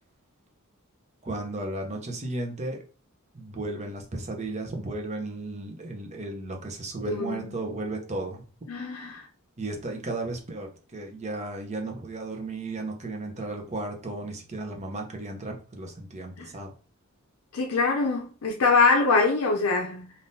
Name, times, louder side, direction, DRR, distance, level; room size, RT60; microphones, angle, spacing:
voice 1, 1.2-2.8 3.3-8.4 9.6-16.7, right 2 dB, 30° right, 0.7 m, -34 dB
voice 2, 7.1-7.5 8.7-9.3 16.4-16.5 17.5-20.1, left 4 dB, 70° left, 0.5 m, -24 dB
3.5 x 2.6 x 2.7 m
head